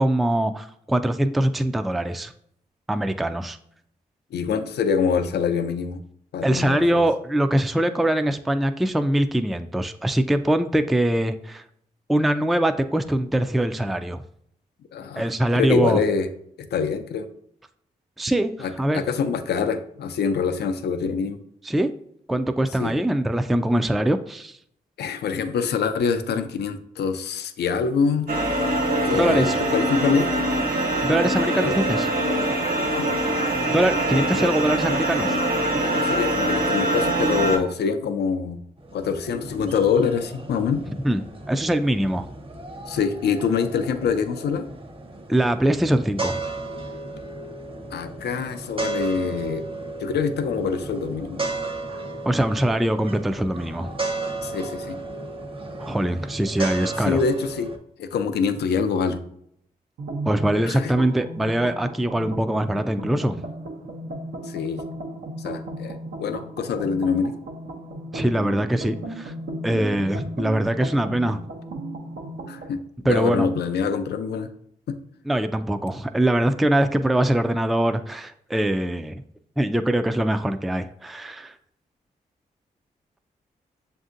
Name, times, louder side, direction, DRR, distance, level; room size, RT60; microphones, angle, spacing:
voice 1, 0.0-2.3 2.9-3.6 6.4-11.6 12.1-14.2 15.2-16.0 18.2-19.0 21.6-21.9 22.3-24.6 29.1-29.6 30.7-32.1 33.7-35.4 41.0-41.2 41.5-42.3 45.3-46.4 52.3-54.0 55.8-57.2 60.3-63.4 68.1-69.3 69.6-71.4 73.0-73.5 75.3-79.2 79.6-81.5, right 1 dB, ahead, 9 dB, 0.3 m, -23 dB
voice 2, 4.3-6.0 6.3-7.0 14.9-15.3 15.5-16.3 16.6-17.3 18.6-21.4 22.8-23.0 25.0-28.3 29.0-30.3 31.6-31.8 32.9-33.1 35.8-38.6 38.9-40.8 42.9-44.7 47.9-49.6 50.0-51.4 54.4-55.0 57.0-57.7 58.0-59.2 60.6-60.9 64.4-64.8 65.4-67.3 72.5-74.5 74.9-75.0, left 6 dB, 80° left, 9 dB, 0.5 m, -25 dB
sound 1, 28.3-37.6, right 1 dB, 55° right, 1.2 m, -23 dB
sound 2, 38.8-57.8, right 3 dB, 30° right, 0.8 m, -34 dB
sound 3, 60.0-72.7, right 1 dB, 80° right, 0.7 m, -35 dB
6.9 x 2.6 x 2.5 m, 0.69 s
supercardioid pair, 45°, 17 cm